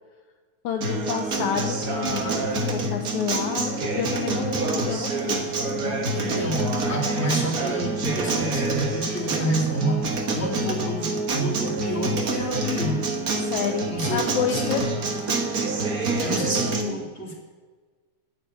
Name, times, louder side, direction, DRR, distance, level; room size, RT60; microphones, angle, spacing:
voice 1, 0.6-5.4 5.7-6.0 13.4-14.8, left 8 dB, 75° left, 4 dB, 1.9 m, -29 dB
Acoustic guitar, 0.8-16.8, right 2 dB, 85° right, 0.8 m, -27 dB
voice 2, 6.1-13.1 13.9-14.9 16.2-17.3, right 1 dB, 5° left, -3 dB, 2.2 m, -29 dB
9.4 x 7.9 x 9.2 m, 1.4 s
omnidirectional pair, 3.8 m